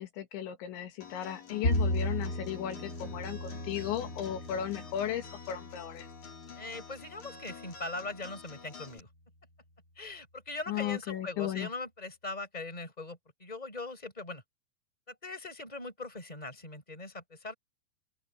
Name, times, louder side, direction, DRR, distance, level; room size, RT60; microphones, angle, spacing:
voice 1, 0.0-6.1 10.7-11.7, left 10 dB, 75° left, 4.0 m, -36 dB
Acoustic guitar, 1.0-9.0, left 5 dB, 40° left, 5.4 m, -49 dB
Bowed string instrument, 1.6-8.0, left 1 dB, 25° left, 2.1 m, -36 dB
voice 2, 6.6-9.1 10.0-14.4 15.2-17.5, left 2 dB, 10° left, 7.6 m, -41 dB
open air
omnidirectional pair, 5.3 m